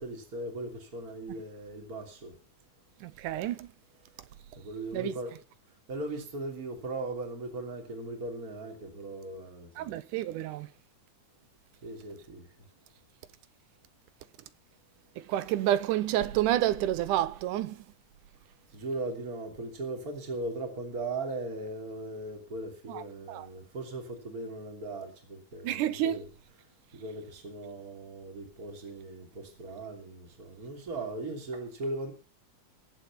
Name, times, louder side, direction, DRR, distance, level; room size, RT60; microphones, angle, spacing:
voice 1, 0.0-2.4 4.5-5.3 5.9-9.9 11.8-12.5 18.7-26.2 26.9-32.1, right 2 dB, 30° right, 3.3 m, -38 dB
voice 2, 3.0-3.7 4.9-5.4 9.8-10.7 15.2-17.9 22.9-23.5 25.6-26.3, right 13 dB, 85° right, 2.4 m, -30 dB
21.0 x 7.8 x 5.9 m
omnidirectional pair, 3.5 m